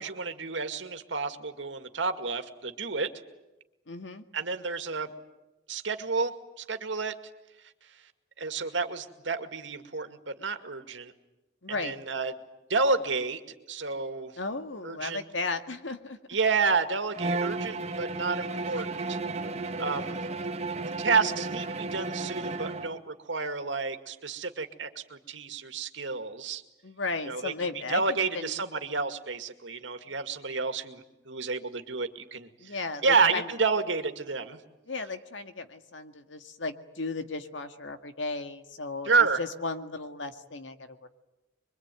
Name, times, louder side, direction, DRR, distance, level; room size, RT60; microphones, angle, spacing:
voice 1, 0.0-3.1 4.3-5.1 5.7-7.1 7.8-8.1 8.4-11.1 11.7-12.3 12.7-13.4 13.7-14.4 14.8-15.2 16.3-19.2 19.6-20.2 21.0-26.6 27.3-32.8 33.0-34.6 39.0-39.4, right 4 dB, 75° right, 8 dB, 2.2 m, -30 dB
voice 2, 3.9-4.2 11.6-12.0 14.4-16.2 26.8-28.5 32.6-33.5 34.9-39.1 39.4-41.1, left 3 dB, 80° left, 8 dB, 2.0 m, -35 dB
Bowed string instrument, 17.1-23.0, right 3 dB, 35° right, 1.3 m, -33 dB
25.5 x 23.5 x 9.3 m, 0.99 s
head